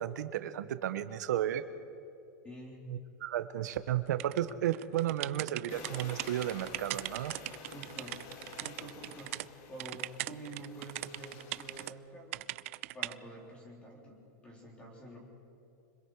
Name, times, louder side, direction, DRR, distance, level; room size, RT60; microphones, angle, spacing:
voice 1, 0.0-1.6 2.9-7.3, right 12 dB, 80° right, 11 dB, 1.1 m, -33 dB
voice 2, 2.4-2.9 7.7-8.2 8.6-9.4 9.7-15.2, right 1 dB, 10° left, -1 dB, 3.7 m, -48 dB
sound 1, 4.2-9.5 9.8-11.9 12.3-13.1, right 19 dB, 50° right, 0.4 m, -40 dB
sound 2, 5.7-11.9, left 6 dB, 35° left, 1.9 m, -50 dB
25.5 x 22.0 x 4.9 m, 2.6 s
supercardioid pair, 170°, 9 cm